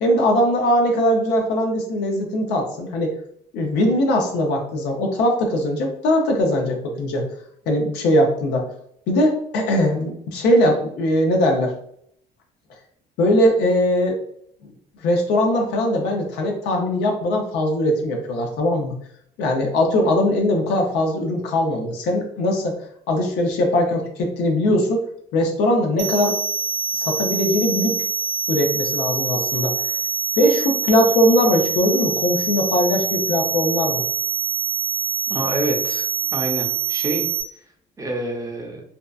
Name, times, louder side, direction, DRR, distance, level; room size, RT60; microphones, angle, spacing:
voice 1, 0.0-3.2 3.5-7.2 7.7-8.7 9.1-11.7 13.2-14.2 15.0-18.9 19.4-22.8 23.1-25.0 25.3-26.3 26.9-28.0 28.5-29.7 30.4-34.0, left 1 dB, 85° left, 2 dB, 0.7 m, -20 dB
sound 1, 26.0-37.4, right 7 dB, 65° right, 0.4 m, -25 dB
voice 2, 35.3-36.1 36.3-37.3 38.0-38.8, right 1 dB, 20° right, 1 dB, 0.6 m, -27 dB
2.7 x 2.2 x 2.4 m, 0.67 s
cardioid pair, 110°, 17 cm